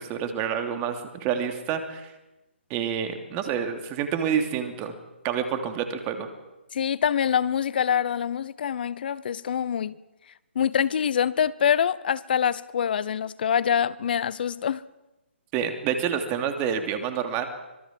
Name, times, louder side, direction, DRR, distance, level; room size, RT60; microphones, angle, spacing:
voice 1, 0.0-2.1 2.7-4.9 5.2-6.3 15.5-17.5, right 8 dB, 25° right, 2.9 m, -28 dB
voice 2, 6.7-9.9 10.6-14.8, left 8 dB, 50° left, 0.8 m, -25 dB
25.5 x 22.0 x 7.6 m
figure-of-eight pair, 145°, 7 cm